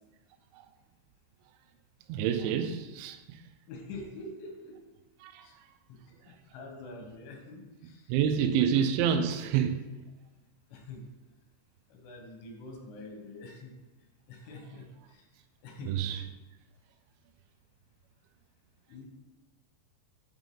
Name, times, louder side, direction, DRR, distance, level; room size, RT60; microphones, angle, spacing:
voice 1, 2.1-3.4 5.2-5.5 8.1-9.8 15.8-16.2, right 8 dB, 85° right, 2.8 m, -28 dB
voice 2, 3.7-4.8 5.4-5.6 5.9-8.6 10.7-11.0 11.9-13.8 14.3-15.3 15.6-16.0 18.9-19.1, left 2 dB, 90° left, 3.5 m, -46 dB
9.0 x 3.7 x 3.7 m
omnidirectional pair, 5.3 m